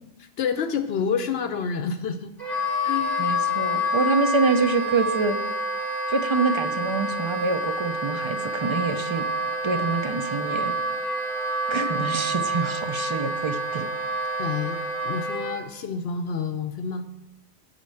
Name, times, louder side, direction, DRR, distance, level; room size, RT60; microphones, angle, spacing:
voice 1, 0.2-2.3 2.8-3.3 14.4-17.1, left 6 dB, 70° left, 8 dB, 0.8 m, -29 dB
Wind instrument woodwind instrument, 2.4-15.6, equal, ahead, 2.9 m, -28 dB
voice 2, 3.2-5.4 6.1-9.3 9.6-10.7 11.7-13.9, right 3 dB, 35° right, 8 dB, 0.6 m, -26 dB
8.8 x 5.2 x 7.6 m, 0.95 s
omnidirectional pair, 1.1 m